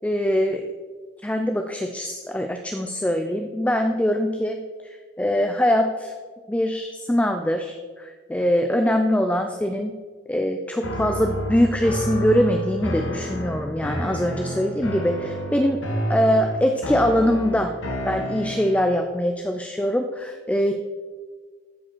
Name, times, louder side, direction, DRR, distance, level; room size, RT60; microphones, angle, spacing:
voice 1, 0.0-0.6 1.2-6.1 6.5-10.0 10.3-15.8 16.1-17.8 18.1-20.7, equal, 5° left, 5 dB, 0.3 m, -23 dB
sound 1, 10.8-18.9, equal, 85° left, 1.5 m, -30 dB
14.0 x 5.0 x 4.4 m, 1.5 s
head